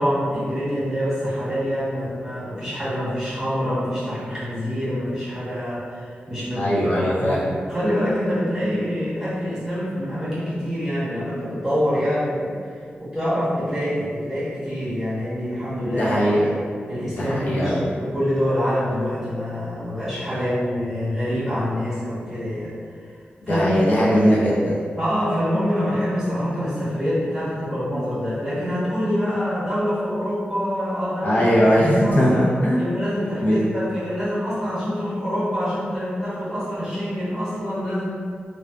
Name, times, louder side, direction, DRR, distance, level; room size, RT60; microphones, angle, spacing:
voice 1, 0.0-6.9 7.2-7.4 7.6-12.6 13.0-16.4 16.9-22.7 23.5-23.7 24.0-24.1 25.0-31.8 32.0-32.2 32.8-38.1, equal, 5° right, -12 dB, 1.0 m, -25 dB
voice 2, 6.5-7.4 15.8-16.5 17.0-17.7 23.4-24.8 31.2-32.8 33.4-33.6, equal, 55° left, -7 dB, 0.6 m, -19 dB
2.4 x 2.2 x 2.2 m, 2.1 s
wide cardioid pair, 150°, 4 cm